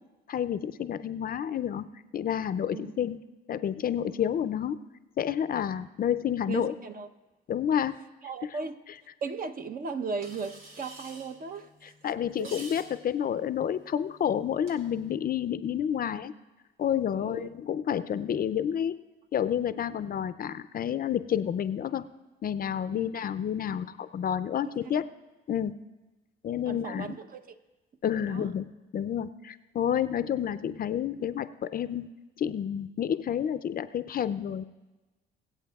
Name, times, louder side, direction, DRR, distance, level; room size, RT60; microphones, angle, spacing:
voice 1, 0.3-1.8 2.1-3.2 3.5-4.8 5.2-6.7 7.5-8.0 8.4-8.6 11.8-16.3 16.8-19.0 19.3-22.1 22.4-25.0 25.5-25.7 26.4-27.1 28.0-28.7 28.9-32.1 32.4-34.6, left 9 dB, 45° left, 14 dB, 0.4 m, -29 dB
voice 2, 6.5-7.1 8.2-8.8 9.2-11.9 12.4-12.5 17.2-17.5 22.9-23.1 24.6-24.9 26.7-27.4 28.2-28.5, right 5 dB, 45° right, 8 dB, 0.7 m, -37 dB
sound 1, 10.2-15.2, right 2 dB, 85° right, 1.7 m, -50 dB
24.5 x 8.3 x 2.3 m, 1.1 s
cardioid pair, 90°, 20 cm